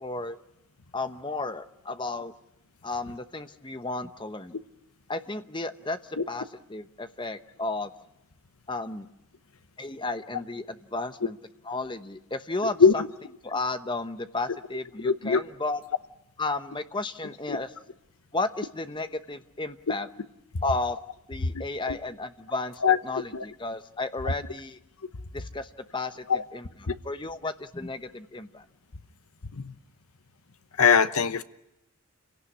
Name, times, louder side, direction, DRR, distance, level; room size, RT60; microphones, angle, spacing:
voice 1, 0.0-0.4 0.9-2.3 2.8-4.6 5.1-7.9 8.7-9.1 9.8-11.4 11.7-13.0 13.4-15.8 16.4-17.7 18.3-20.1 20.6-21.0 21.3-24.8 25.3-26.2 26.5-26.7 27.0-28.6, left 2 dB, 20° left, 9 dB, 1.0 m, -33 dB
voice 2, 15.0-15.4 17.5-17.6 21.5-22.0 22.8-23.0 23.3-23.4 24.3-24.4 26.3-26.4 26.9-27.0 29.5-29.7 30.8-31.4, left 6 dB, 85° left, 11 dB, 1.0 m, -22 dB
28.5 x 17.5 x 9.8 m, 0.88 s
head